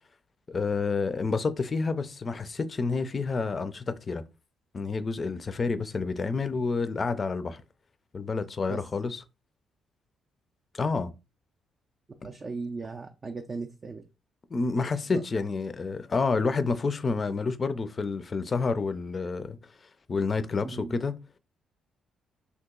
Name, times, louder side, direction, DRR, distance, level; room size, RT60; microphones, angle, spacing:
voice 1, 0.5-4.2 4.7-7.6 8.1-9.2 10.7-11.1 14.5-19.6 20.1-21.1, left 4 dB, 35° left, 0.4 m, -29 dB
voice 2, 12.2-14.0 15.1-15.2 20.6-21.0, right 4 dB, 35° right, 0.4 m, -37 dB
2.9 x 2.4 x 3.7 m
cardioid pair, 90°, 0 cm